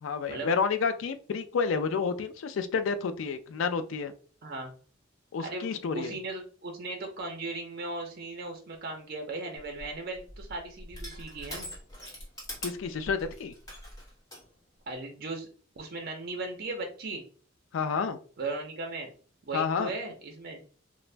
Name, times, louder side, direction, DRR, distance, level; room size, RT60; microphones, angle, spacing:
voice 1, 0.0-4.1 5.3-6.1 12.6-13.5 17.7-18.2 19.5-19.9, left 5 dB, 70° left, 10 dB, 0.3 m, -30 dB
voice 2, 4.4-4.7 5.4-5.7 5.9-11.7 14.9-15.5 15.8-17.2 18.4-19.1 19.4-20.6, right 2 dB, 50° right, 3 dB, 0.5 m, -37 dB
Crushing, 9.6-14.4, equal, 20° left, 1.0 m, -43 dB
2.5 x 2.0 x 3.2 m, 0.41 s
head